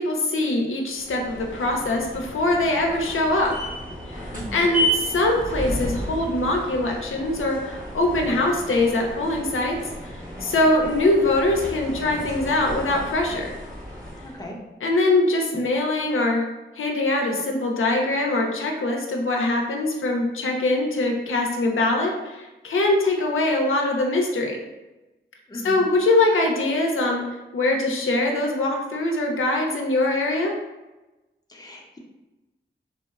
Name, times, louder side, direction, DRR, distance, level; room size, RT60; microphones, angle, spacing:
voice 1, 0.0-3.5 4.2-9.7 10.4-13.5 14.8-16.5 16.8-24.6 25.6-30.6, left 2 dB, 90° left, 1 dB, 0.5 m, -23 dB
sound 1, 1.0-14.5, equal, 40° right, 1.2 m, -33 dB
voice 2, 4.3-4.6 14.2-14.6 25.5-25.8 31.5-32.0, equal, 20° left, -1 dB, 0.6 m, -38 dB
3.7 x 2.1 x 2.3 m, 1.1 s
wide cardioid pair, 65°, 20 cm